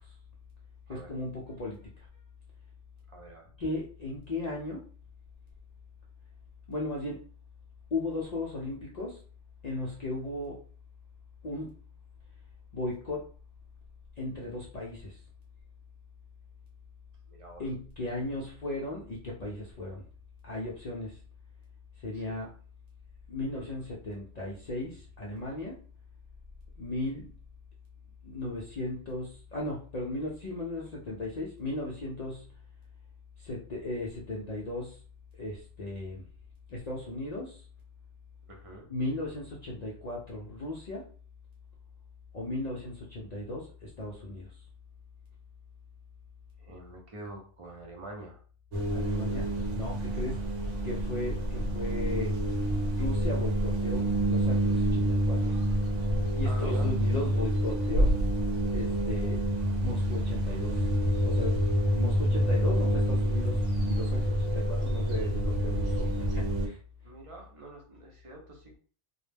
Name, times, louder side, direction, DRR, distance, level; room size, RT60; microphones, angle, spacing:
voice 1, 0.9-1.8 3.6-4.8 6.7-7.2 7.9-9.2 9.6-10.6 11.4-11.7 12.7-13.3 14.2-15.2 17.6-20.0 20.4-21.2 22.0-22.5 23.3-25.8 26.8-27.3 28.2-32.4 33.4-35.0 35.4-36.2 36.7-37.6 38.9-41.0 42.3-44.5 48.9-50.4 50.8-52.3 52.9-55.6 56.4-58.1 58.7-59.4 59.8-60.8 61.2-61.6 61.9-66.8, left 2 dB, 60° left, -3 dB, 0.4 m, -36 dB
voice 2, 3.1-3.5 17.3-17.6 22.1-22.4 38.5-38.9 46.6-48.4 56.4-56.9 67.0-68.8, right 2 dB, 40° right, 1 dB, 0.5 m, -45 dB
sound 1, 48.7-66.7, equal, 80° right, 1.0 m, -27 dB
2.3 x 2.1 x 3.2 m, 0.42 s
omnidirectional pair, 1.3 m